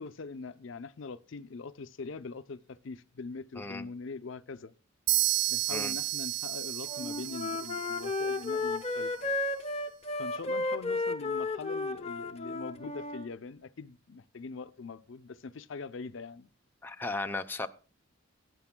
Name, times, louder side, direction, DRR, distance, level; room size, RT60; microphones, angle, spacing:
voice 1, 0.0-4.7 5.5-9.4 10.2-16.5, left 4 dB, 60° left, 0.5 m, -42 dB
sound 1, 5.1-8.8, right 15 dB, 55° right, 0.4 m, -32 dB
Wind instrument woodwind instrument, 6.9-13.3, left 3 dB, 30° left, 0.9 m, -33 dB
voice 2, 16.8-17.7, left 2 dB, 10° left, 0.5 m, -35 dB
20.5 x 9.6 x 2.2 m
head